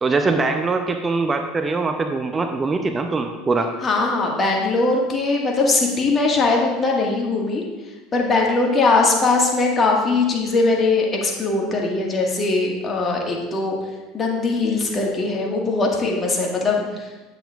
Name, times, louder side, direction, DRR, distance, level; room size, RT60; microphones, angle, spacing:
voice 1, 0.0-3.7, right 3 dB, 25° right, 6 dB, 0.6 m, -22 dB
voice 2, 3.8-7.6 8.1-13.8 14.1-17.1, left 3 dB, 30° left, -1 dB, 1.7 m, -20 dB
8.9 x 7.6 x 2.4 m, 1.2 s
hypercardioid pair, 80°, 0 cm